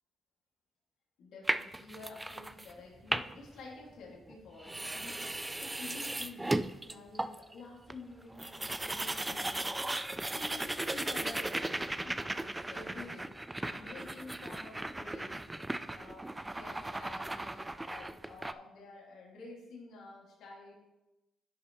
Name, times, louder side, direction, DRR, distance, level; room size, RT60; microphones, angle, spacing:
voice 1, 1.2-6.5 6.8-9.9 10.3-13.3 13.6-20.7, left 3 dB, 75° left, -3 dB, 2.1 m, -50 dB
sound 1, 1.5-2.7 3.0-3.5 4.3-4.4 4.6-7.5 7.9-8.0 8.2-18.5, right 1 dB, 15° right, 0.3 m, -36 dB
10.5 x 6.0 x 3.0 m, 1.0 s
cardioid pair, 90°, 0 cm